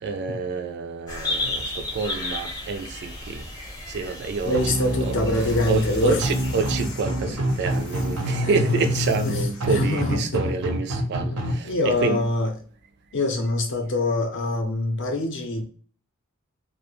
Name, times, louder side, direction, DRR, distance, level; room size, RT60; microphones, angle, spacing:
voice 1, 0.0-3.4 3.9-12.2, right 4 dB, 50° right, 0.3 m, -28 dB
sound 1, 1.1-6.8, left 2 dB, 15° left, 0.6 m, -33 dB
voice 2, 4.5-6.2 7.3-7.4 8.3-8.5 9.3-9.4 9.7-10.5 11.3-11.4 11.6-12.5 13.1-15.6, left 2 dB, 60° left, 0.6 m, -24 dB
sound 2, 4.5-11.5, equal, 85° right, 0.7 m, -27 dB
sound 3, 5.3-10.1, left 2 dB, 90° left, 0.7 m, -40 dB
2.3 x 2.1 x 3.0 m
head